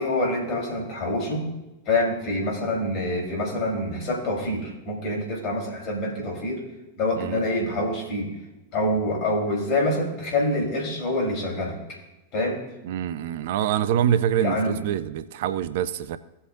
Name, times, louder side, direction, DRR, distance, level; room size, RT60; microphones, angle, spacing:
voice 1, 0.0-1.5 1.9-6.6 7.0-8.3 8.7-11.8 12.3-12.6 14.4-14.8, left 1 dB, 40° left, -1 dB, 3.7 m, -26 dB
voice 2, 12.8-16.2, right 10 dB, 55° right, 14 dB, 0.5 m, -25 dB
17.0 x 7.8 x 2.6 m, 1.0 s
figure-of-eight pair, 90°, 0 cm